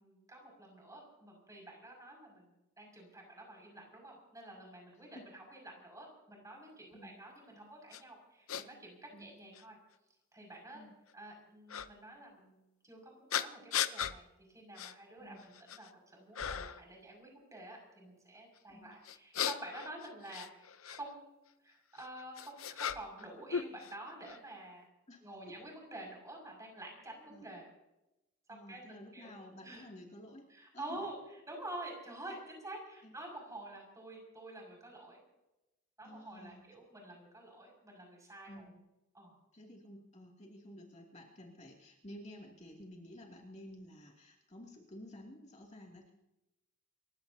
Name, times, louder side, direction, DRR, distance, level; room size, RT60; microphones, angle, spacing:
voice 1, 0.0-9.8 10.3-10.8 11.1-24.9 25.2-27.7 28.7-29.3 29.6-29.9 30.5-35.2 36.0-38.7 39.1-39.3, right 1 dB, 15° right, 0 dB, 6.0 m, -49 dB
sound 1, 7.9-8.0 8.5-8.6 9.5-9.6 11.7-11.9 13.3-14.2 14.8-14.9 15.4-15.9 16.3-16.8 19.0-21.0 22.0-23.2 23.5-24.4, left 8 dB, 85° left, 0.8 m, -37 dB
voice 2, 28.5-30.4 30.7-31.0 33.0-33.1 36.0-36.6 38.5-38.8 39.5-46.1, left 1 dB, 35° left, -1 dB, 2.5 m, -52 dB
29.5 x 16.0 x 2.8 m, 0.95 s
head